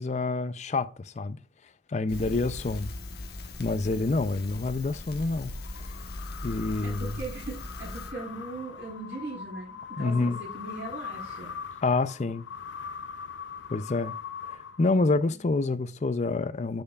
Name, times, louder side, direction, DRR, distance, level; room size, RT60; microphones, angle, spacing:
voice 1, 0.0-1.4 1.9-2.9 3.6-5.9 6.4-7.1 10.0-10.4 11.8-12.5 13.7-14.2 14.5-16.8, left 3 dB, 40° left, 0.4 m, -27 dB
Crackle, 2.1-8.1, left 2 dB, 60° left, 1.2 m, -39 dB
sound 1, 5.5-15.3, left 6 dB, 90° left, 0.5 m, -41 dB
voice 2, 6.8-11.5 14.9-15.4, right 2 dB, 85° right, 4.4 m, -40 dB
10.5 x 5.6 x 2.4 m
head